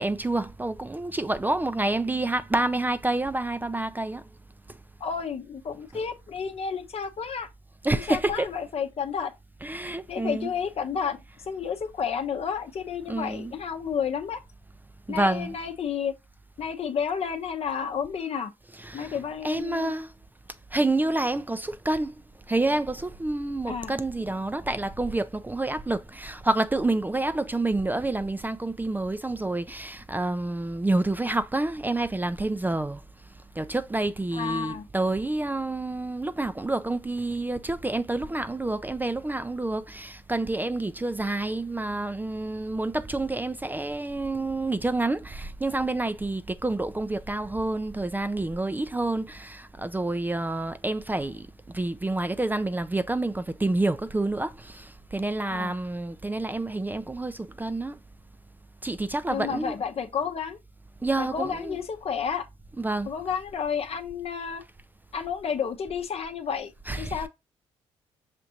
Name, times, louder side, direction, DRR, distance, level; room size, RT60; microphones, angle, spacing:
voice 1, 0.0-4.3 4.7-4.8 7.8-8.5 9.6-10.5 13.1-13.5 15.1-15.5 18.8-19.2 19.4-20.1 20.7-22.1 22.5-33.0 33.6-58.0 58.8-59.7 61.0-61.8 62.8-63.1 66.9-67.2, right 2 dB, 15° right, 0.4 m, -28 dB
voice 2, 5.0-7.5 7.9-9.3 10.1-14.4 15.1-16.1 16.6-18.5 18.9-19.9 23.7-23.9 34.3-34.9 55.5-55.7 59.3-60.6 61.2-62.4 63.1-64.6 65.1-66.7 67.0-67.3, left 7 dB, 55° left, 0.8 m, -31 dB
5.8 x 2.5 x 2.8 m
supercardioid pair, 55°, 12 cm